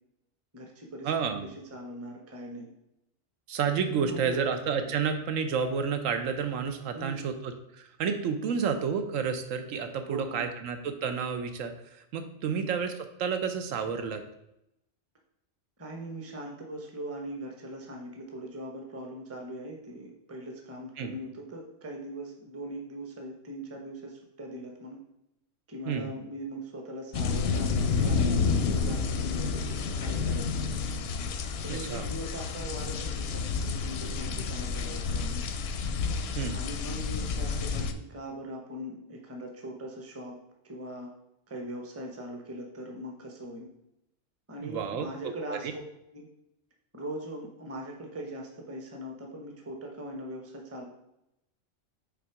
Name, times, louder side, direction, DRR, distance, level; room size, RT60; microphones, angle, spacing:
voice 1, 0.5-1.1 1.4-2.7 3.9-4.4 4.9-5.0 6.9-7.3 8.4-8.5 10.1-10.5 12.4-12.6 15.8-25.0 25.7-28.2 28.6-30.7 31.6-35.4 36.5-40.4 40.6-41.1 41.5-43.7 44.5-45.8 46.1-46.3 46.9-50.8, right 1 dB, 15° right, 1 dB, 0.8 m, -41 dB
voice 2, 1.0-1.5 3.5-14.2 21.0-21.1 25.9-26.1 31.7-32.1 36.3-36.6 44.6-45.7, right 6 dB, 85° right, 7 dB, 1.1 m, -30 dB
sound 1, 27.1-37.9, left 5 dB, 65° left, 0.7 m, -30 dB
5.9 x 3.9 x 4.8 m, 0.83 s
omnidirectional pair, 1.3 m